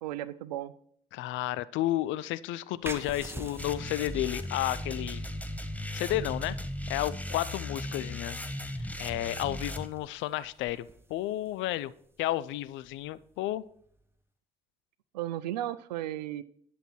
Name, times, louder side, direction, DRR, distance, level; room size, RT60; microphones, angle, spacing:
voice 1, 0.0-0.7 15.1-16.4, right 13 dB, 85° right, 16 dB, 0.5 m, -34 dB
voice 2, 1.1-5.3 5.9-6.6 6.9-8.5 9.0-11.9 12.2-13.6, left 15 dB, 70° left, 17 dB, 0.5 m, -32 dB
sound 1, 2.8-14.1, right 2 dB, 10° right, 1.3 m, -49 dB
sound 2, 3.6-9.9, left 1 dB, 5° left, 1.2 m, -37 dB
10.5 x 7.0 x 4.5 m, 0.65 s
hypercardioid pair, 45°, 21 cm